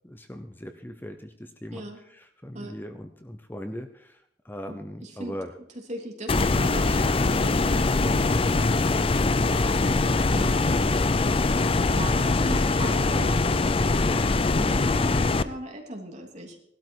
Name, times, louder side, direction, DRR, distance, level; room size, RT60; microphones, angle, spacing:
voice 1, 0.0-1.9 2.1-5.5, equal, 10° left, 7 dB, 0.9 m, -39 dB
voice 2, 1.7-2.0 2.5-2.7 4.7-5.3 5.9-10.6 11.9-13.4 14.5-16.6, right 1 dB, 45° right, 1 dB, 3.2 m, -38 dB
sound 1, 6.3-15.4, left 3 dB, 30° left, 0.5 m, -23 dB
17.5 x 12.5 x 4.7 m, 0.69 s
head